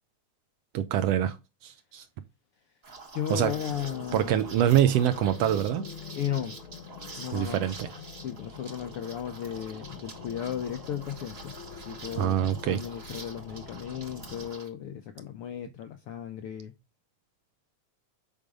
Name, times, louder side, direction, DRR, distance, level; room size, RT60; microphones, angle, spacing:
voice 1, 0.7-1.4 1.6-2.0 3.3-3.5 4.1-5.9 7.3-7.9 12.2-12.8, right 10 dB, 70° right, 1.6 m, -25 dB
Liquid, 2.8-14.7, right 4 dB, 35° right, 0.9 m, -47 dB
voice 2, 3.1-4.5 6.1-6.5 7.1-7.7 8.2-11.6 11.8-16.7, left 9 dB, 75° left, 1.3 m, -35 dB
sound 1, 3.4-14.5, left 7 dB, 60° left, 1.5 m, -45 dB
8.4 x 5.1 x 3.6 m
omnidirectional pair, 3.3 m